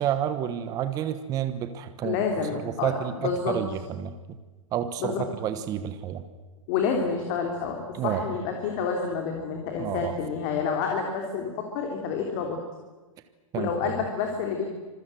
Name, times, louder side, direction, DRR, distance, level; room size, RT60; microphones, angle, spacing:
voice 1, 0.0-2.2 2.5-4.4 4.7-6.2 7.9-8.4 9.8-10.1 13.5-13.7, right 10 dB, 20° right, 10 dB, 1.2 m, -30 dB
voice 2, 2.0-2.9 3.2-3.6 5.0-5.3 6.7-12.6 13.5-14.6, left 6 dB, 35° left, 2 dB, 3.3 m, -28 dB
26.5 x 22.0 x 7.8 m, 1.3 s
hypercardioid pair, 160°, 18 cm